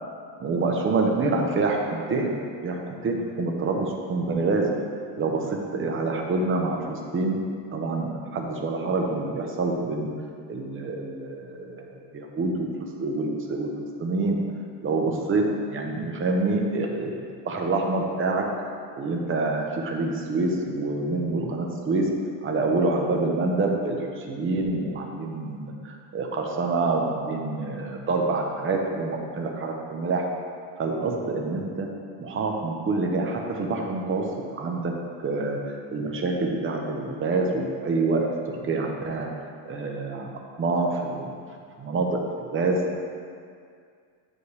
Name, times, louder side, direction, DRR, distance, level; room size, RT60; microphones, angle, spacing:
voice 1, 0.4-2.4 2.6-4.7 5.2-7.4 7.7-10.1 10.5-12.7 13.0-13.7 14.0-14.4 14.8-15.5 15.7-17.1 17.4-18.4 18.9-22.1 22.4-30.3 30.8-31.9 32.2-34.2 34.6-34.9 35.2-38.2 38.6-39.3 39.6-40.3 40.6-41.3 41.8-42.8, right 3 dB, 25° right, 1 dB, 0.8 m, -26 dB
9.9 x 6.5 x 3.3 m, 2.2 s
cardioid pair, 165°, 45 cm